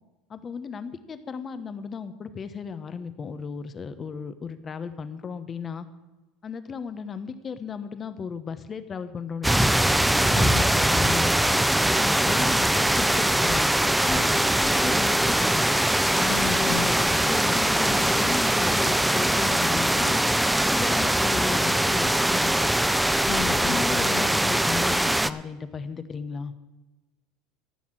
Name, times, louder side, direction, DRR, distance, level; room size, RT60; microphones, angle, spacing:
voice 1, 0.3-5.9 6.4-9.8 10.2-10.3 10.7-11.6 12.0-13.7 14.0-15.6 16.1-20.2 20.7-22.7 23.6-26.5, left 6 dB, 25° left, 11 dB, 1.0 m, -35 dB
sound 1, 9.4-25.3, right 1 dB, 5° right, 0.4 m, -22 dB
voice 2, 10.3-10.7 16.3-16.9 23.3-24.2, left 11 dB, 60° left, 6 dB, 1.3 m, -32 dB
14.5 x 5.9 x 8.8 m, 1.1 s
supercardioid pair, 130°, 0 cm